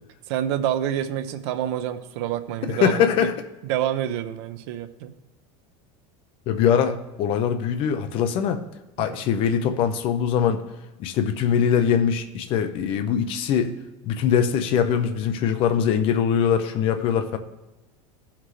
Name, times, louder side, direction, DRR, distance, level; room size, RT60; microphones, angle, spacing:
voice 1, 0.3-3.3 3.6-5.1 9.0-9.1, right 11 dB, 65° right, 9 dB, 0.7 m, -27 dB
voice 2, 2.7-3.3 6.5-8.6 9.0-10.6 11.0-13.7 14.0-17.4, left 8 dB, 35° left, 7 dB, 0.6 m, -22 dB
15.0 x 5.8 x 3.2 m, 1.1 s
cardioid pair, 170°, 15 cm